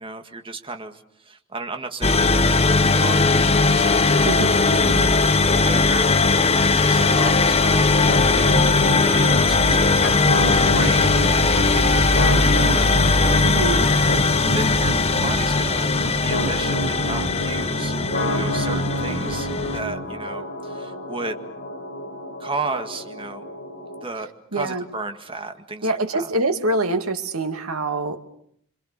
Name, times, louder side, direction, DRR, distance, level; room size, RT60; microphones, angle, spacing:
voice 1, 0.0-6.1 6.6-7.9 8.3-13.5 14.5-15.9 16.2-21.4 22.4-23.4 24.0-26.3, right 3 dB, 25° right, 6 dB, 2.0 m, -33 dB
sound 1, 2.0-19.8, left 3 dB, 30° left, 1.1 m, -19 dB
voice 2, 4.8-5.1 13.4-13.9 24.5-24.8 25.8-28.2, right 2 dB, 85° right, 6 dB, 2.5 m, -25 dB
sound 2, 7.0-7.4 9.0-9.4 11.0-11.4 12.8-13.2 13.5-13.6 15.2-15.5, right 1 dB, 65° right, 3.5 m, -41 dB
sound 3, 8.0-24.0, equal, 50° left, 5.7 m, -28 dB
27.0 x 25.5 x 6.8 m, 0.66 s
head